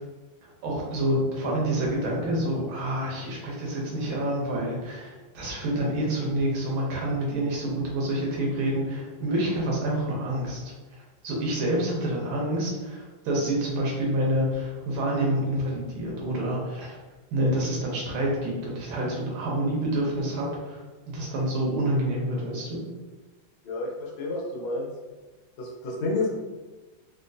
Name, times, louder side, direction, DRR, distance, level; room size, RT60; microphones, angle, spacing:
voice 1, 0.4-10.7 11.2-17.0 17.3-22.8, right 1 dB, 90° right, -3 dB, 1.7 m, -28 dB
voice 2, 23.6-24.9 25.6-26.3, left 2 dB, 85° left, -3 dB, 1.7 m, -30 dB
4.3 x 2.2 x 2.6 m, 1.2 s
omnidirectional pair, 2.2 m